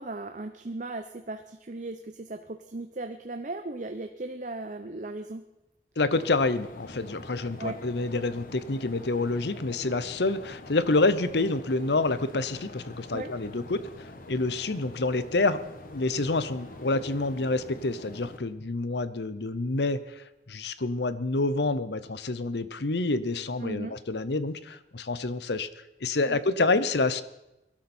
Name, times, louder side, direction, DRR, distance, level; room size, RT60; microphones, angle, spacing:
voice 1, 0.0-5.4 7.6-7.8 13.1-13.3 23.6-24.0 26.3-26.4, right 2 dB, 45° right, 7 dB, 0.8 m, -37 dB
voice 2, 6.0-15.6 15.9-25.7 26.0-27.2, left 2 dB, 70° left, 14 dB, 0.9 m, -28 dB
sound 1, 6.1-18.4, left 2 dB, 50° left, 1.4 m, -45 dB
22.0 x 12.0 x 4.5 m, 0.94 s
head